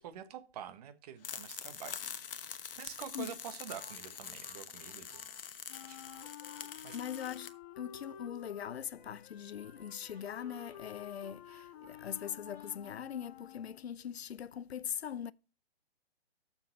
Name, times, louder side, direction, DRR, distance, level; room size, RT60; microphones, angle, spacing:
voice 1, 0.0-2.1 2.5-5.2 5.8-6.0 6.8-7.0, right 9 dB, 40° right, 1.4 m, -47 dB
sound 1, 1.2-7.5, left 8 dB, 60° left, 1.1 m, -45 dB
sound 2, 3.8-5.4 6.1-7.9 8.3-8.5 8.9-9.2 9.5-10.8 11.3-12.9, right 2 dB, 70° right, 2.9 m, -62 dB
Wind instrument woodwind instrument, 5.7-14.0, left 11 dB, 20° left, 0.5 m, -51 dB
voice 2, 6.9-15.3, left 9 dB, 75° left, 0.6 m, -41 dB
7.0 x 7.0 x 5.7 m
figure-of-eight pair, 130°, 32 cm